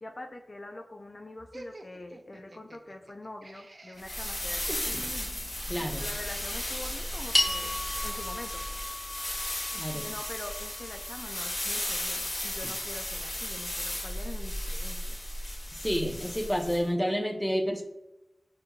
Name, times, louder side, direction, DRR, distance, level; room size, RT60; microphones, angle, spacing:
voice 1, 0.0-5.1 5.8-8.8 9.9-15.2, left 2 dB, 50° left, 4 dB, 0.4 m, -44 dB
Laughter, 1.5-5.8, right 2 dB, 60° right, 0.4 m, -47 dB
sound 1, 4.0-16.8, left 1 dB, 70° left, 1.5 m, -35 dB
voice 2, 5.7-6.1 9.7-10.1 15.7-17.8, equal, 10° left, 2 dB, 0.7 m, -29 dB
sound 2, 7.3-11.8, left 1 dB, 30° left, 1.2 m, -34 dB
5.0 x 2.9 x 2.3 m, 0.92 s
wide cardioid pair, 60°, 0 cm